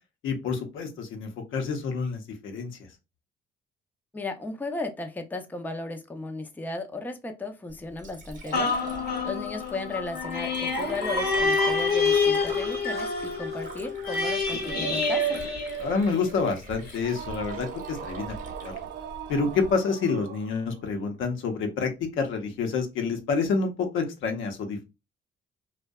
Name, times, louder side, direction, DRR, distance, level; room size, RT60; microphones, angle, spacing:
voice 1, 0.2-2.7 15.8-18.3 18.6-18.7 19.3-21.9 22.2-24.8, left 4 dB, 80° left, 5 dB, 0.7 m, -28 dB
voice 2, 4.1-8.8 9.2-15.4, left 2 dB, 10° left, 6 dB, 0.4 m, -35 dB
Liquid, 7.7-19.7, right 1 dB, 40° right, 0.8 m, -42 dB
sound 1, 8.5-16.4 16.9-17.0, left 3 dB, 50° left, 0.8 m, -27 dB
sound 2, 16.9-20.9, right 8 dB, 55° right, 0.4 m, -40 dB
2.6 x 2.1 x 2.2 m, 0.26 s
cardioid pair, 90°, 20 cm